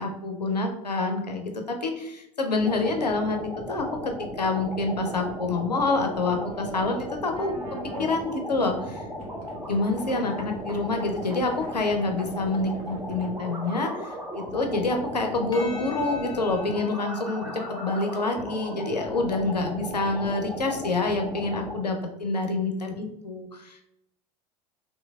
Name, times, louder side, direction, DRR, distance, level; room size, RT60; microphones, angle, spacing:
voice 1, 0.0-9.0 9.7-23.8, left 3 dB, 85° left, 4 dB, 0.5 m, -27 dB
sound 1, 2.6-21.7, equal, 15° right, 0.9 m, -36 dB
sound 2, 6.0-18.7, right 1 dB, 65° right, 1.1 m, -47 dB
Percussion, 15.5-20.1, left 6 dB, 20° left, 0.6 m, -44 dB
3.1 x 3.1 x 2.3 m, 0.82 s
figure-of-eight pair, 75°, 20 cm